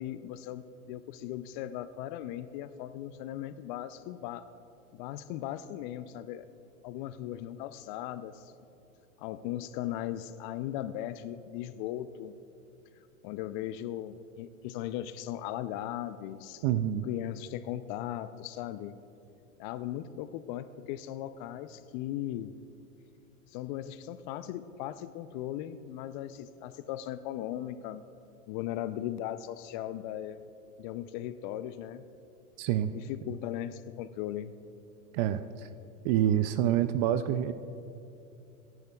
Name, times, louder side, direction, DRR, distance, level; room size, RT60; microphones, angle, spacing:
voice 1, 0.0-4.5 4.9-6.5 6.8-8.5 9.2-12.3 13.2-16.6 17.0-19.0 19.6-22.5 23.5-28.1 28.5-30.4 30.8-32.0 32.9-34.6, left 12 dB, 35° left, 13 dB, 0.4 m, -38 dB
voice 2, 16.6-17.1 32.6-32.9 35.1-35.7 36.0-37.5, right 11 dB, 35° right, 12 dB, 0.4 m, -27 dB
25.5 x 11.0 x 2.3 m, 2.8 s
hypercardioid pair, 100°, 43 cm